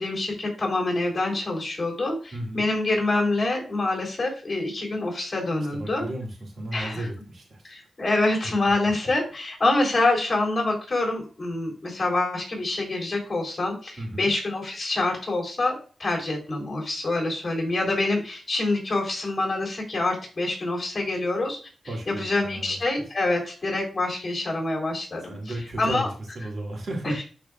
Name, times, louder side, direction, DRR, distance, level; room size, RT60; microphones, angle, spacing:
voice 1, 0.0-6.1 6.7-7.1 7.7-21.6 22.1-26.1 27.0-27.2, left 2 dB, 35° left, 0 dB, 3.7 m, -26 dB
voice 2, 2.3-2.6 5.7-7.6 14.0-14.3 21.9-23.0 25.3-27.2, right 1 dB, 60° right, 0 dB, 2.8 m, -34 dB
11.5 x 4.8 x 2.4 m, 0.37 s
wide cardioid pair, 90°, 0 cm